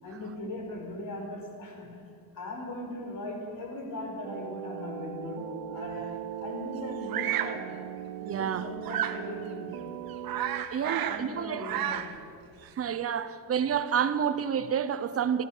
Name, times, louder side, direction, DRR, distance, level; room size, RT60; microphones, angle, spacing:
voice 1, 0.0-7.7 8.4-9.9 10.8-12.2, left 2 dB, 50° left, 4.8 m, -39 dB
sound 1, 4.2-10.7, right 11 dB, 90° right, 1.0 m, -39 dB
Bird vocalization bird call bird song, 7.1-7.6 8.8-9.2 9.7-9.8 10.1-11.3 11.5-12.2, right 11 dB, 60° right, 1.2 m, -31 dB
voice 2, 8.2-8.7 10.7-11.7 12.8-15.4, right 8 dB, 35° right, 0.9 m, -29 dB
24.5 x 15.5 x 6.8 m
cardioid pair, 160°, 41 cm